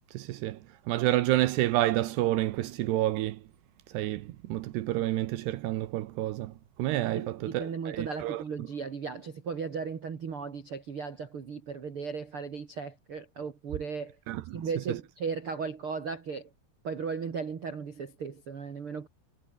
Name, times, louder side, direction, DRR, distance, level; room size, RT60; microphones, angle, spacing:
voice 1, 0.1-0.6 0.9-3.4 3.9-6.5 6.8-8.4 14.3-14.6 14.9-15.0, right 15 dB, 75° right, 2.8 m, -29 dB
voice 2, 7.1-14.2 14.5-16.5 16.8-19.1, right 5 dB, 40° right, 2.1 m, -36 dB
omnidirectional pair, 5.3 m